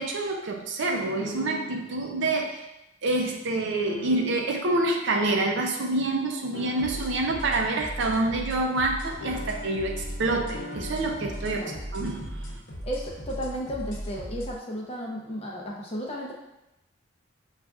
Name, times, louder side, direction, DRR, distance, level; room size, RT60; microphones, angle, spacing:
voice 1, 0.0-2.6 3.0-11.6 11.9-12.6, right 2 dB, 60° right, 2 dB, 0.5 m, -27 dB
sound 1, 1.2-2.0 3.9-4.7 6.5-7.4 9.2-11.9, left 3 dB, 90° left, 0.5 m, -41 dB
sound 2, 6.8-14.5, equal, 60° left, 0.8 m, -37 dB
voice 2, 12.8-16.3, equal, 30° left, -2 dB, 0.6 m, -34 dB
6.2 x 2.4 x 2.3 m, 0.91 s
head